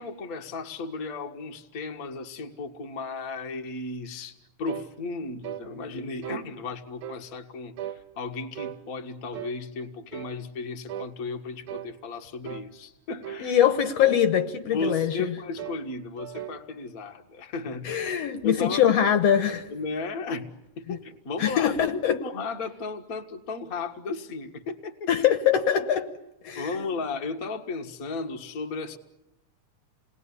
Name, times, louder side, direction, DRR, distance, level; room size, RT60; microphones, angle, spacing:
voice 1, 0.0-13.6 14.7-18.0 18.4-18.9 19.7-25.1 26.6-29.0, left 4 dB, 40° left, 1.5 m, -35 dB
sound 1, 4.7-4.9 5.4-5.7 6.2-6.5 7.0-7.2 7.8-8.0 8.6-8.8 9.3-9.6 10.1-10.4 10.9-11.1 11.7-11.9 12.4-12.7 13.2-13.5 14.0-14.2 14.8-15.0 15.6-15.8 16.2-16.6, right 11 dB, 85° right, 2.7 m, -37 dB
voice 2, 13.4-15.3 17.9-19.7 20.9-21.0 21.4-22.2 25.1-26.1 26.4-26.7, left 9 dB, 65° left, 2.1 m, -23 dB
28.5 x 20.5 x 9.8 m
omnidirectional pair, 3.4 m